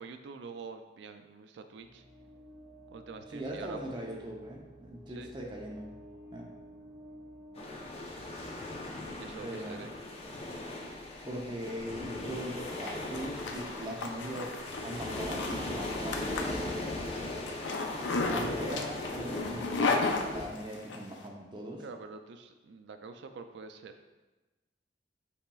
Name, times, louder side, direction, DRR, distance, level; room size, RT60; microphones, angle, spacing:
voice 1, 0.0-2.0 2.9-3.8 5.2-5.3 9.1-9.9 21.8-23.9, right 4 dB, 65° right, 7 dB, 0.3 m, -46 dB
sound 1, 1.8-8.7, right 1 dB, 5° right, 1.2 m, -52 dB
voice 2, 3.3-5.9 6.3-6.5 9.2-9.8 11.2-14.5 14.8-16.8 18.2-21.8, right 1 dB, 25° right, 0 dB, 0.6 m, -40 dB
sound 2, 7.6-20.5, left 2 dB, 35° left, 0.6 m, -38 dB
Zipper (clothing), 12.3-21.0, left 3 dB, 70° left, 0.5 m, -35 dB
5.6 x 4.0 x 2.3 m, 1.2 s
head